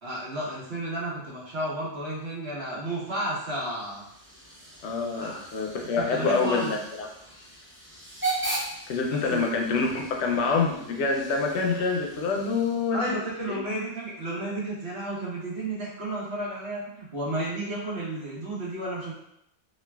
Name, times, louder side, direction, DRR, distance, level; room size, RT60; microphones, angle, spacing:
voice 1, 0.0-4.0 5.1-5.4 6.0-6.7 9.1-9.4 12.9-19.1, right 1 dB, 70° right, -7 dB, 1.3 m, -32 dB
Hiss / Train / Alarm, 3.5-13.1, right 2 dB, 15° right, 0.4 m, -38 dB
voice 2, 4.8-7.1 8.9-13.1 13.5-13.6, left 4 dB, 85° left, 1 dB, 0.9 m, -26 dB
3.1 x 2.4 x 2.2 m, 0.78 s
omnidirectional pair, 1.1 m